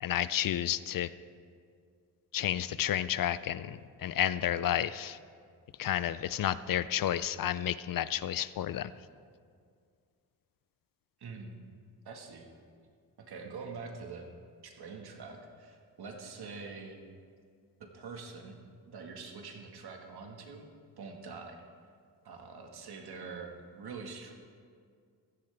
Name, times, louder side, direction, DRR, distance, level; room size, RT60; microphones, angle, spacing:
voice 1, 0.0-1.1 2.3-5.2 5.8-8.9, left 11 dB, 60° left, 16 dB, 0.5 m, -31 dB
voice 2, 11.2-11.5 12.1-12.5 13.2-14.3 14.6-17.0 17.8-20.7 21.0-21.6 22.2-24.3, right 4 dB, 70° right, 2 dB, 1.8 m, -45 dB
15.5 x 14.0 x 3.4 m, 2.2 s
cardioid pair, 105°, 39 cm